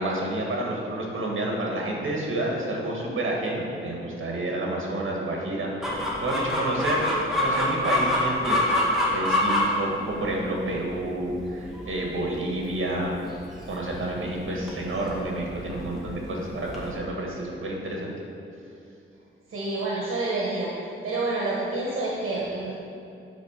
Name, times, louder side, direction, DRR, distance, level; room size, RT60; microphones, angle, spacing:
voice 1, 0.0-7.1 7.4-8.7 9.1-13.2 13.7-18.1, right 1 dB, 70° right, -1 dB, 1.9 m, -29 dB
Chicken rooster, 5.8-16.9, left 1 dB, ahead, 1.9 m, -28 dB
voice 2, 19.5-20.7 21.0-22.7, right 2 dB, 90° right, -4 dB, 1.2 m, -28 dB
9.2 x 4.8 x 6.6 m, 2.6 s
wide cardioid pair, 100°, 21 cm